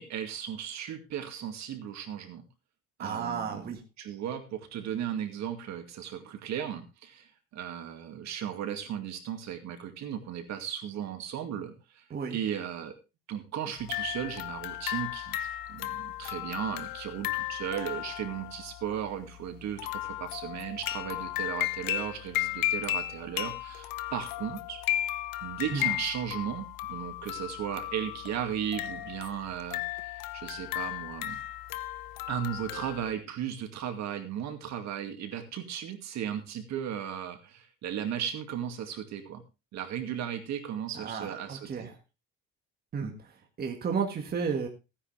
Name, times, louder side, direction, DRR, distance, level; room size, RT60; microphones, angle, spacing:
voice 1, 0.0-2.4 3.0-12.0 12.3-12.9 13.3-24.8 25.4-31.4 32.3-39.4 39.7-41.9, right 9 dB, 55° right, 6 dB, 2.2 m, -36 dB
voice 2, 3.0-3.8 12.1-12.4 25.7-25.9 40.9-41.9 42.9-43.1 43.6-44.7, right 6 dB, 30° right, 3 dB, 1.8 m, -32 dB
sound 1, 13.8-33.1, left 15 dB, 80° left, 0.8 m, -35 dB
16.0 x 9.9 x 3.3 m, 0.27 s
cardioid pair, 160°, 33 cm